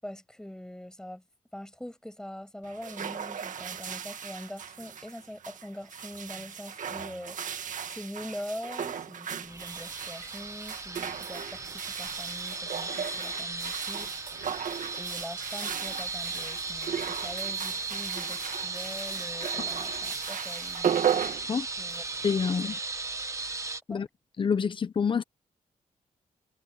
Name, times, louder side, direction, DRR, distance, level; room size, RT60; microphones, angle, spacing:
voice 1, 0.0-1.2 1.5-14.1 14.9-21.3 21.8-22.0 22.6-22.8 23.9-24.1, left 1 dB, 5° left, 7.5 m, -43 dB
sound 1, 2.6-22.2, right 8 dB, 70° right, 1.7 m, -36 dB
sound 2, 9.5-23.8, right 3 dB, 20° right, 1.4 m, -36 dB
voice 2, 22.2-22.7 23.9-24.1 24.4-25.2, left 6 dB, 35° left, 0.9 m, -27 dB
wide cardioid pair, 160°, 14 cm